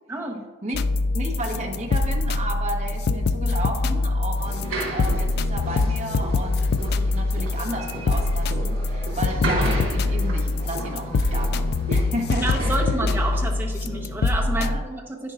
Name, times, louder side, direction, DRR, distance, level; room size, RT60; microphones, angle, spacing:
voice 1, 0.1-0.4 12.4-15.3, right 2 dB, 10° right, -1 dB, 1.1 m, -29 dB
sound 1, 0.7-14.8, left 3 dB, 50° left, 0.3 m, -24 dB
voice 2, 1.1-12.8 14.5-14.8, right 1 dB, 35° right, 0 dB, 1.3 m, -33 dB
sound 2, 4.4-13.5, right 2 dB, 80° right, 2.9 m, -33 dB
10.0 x 9.7 x 2.5 m, 1.4 s
head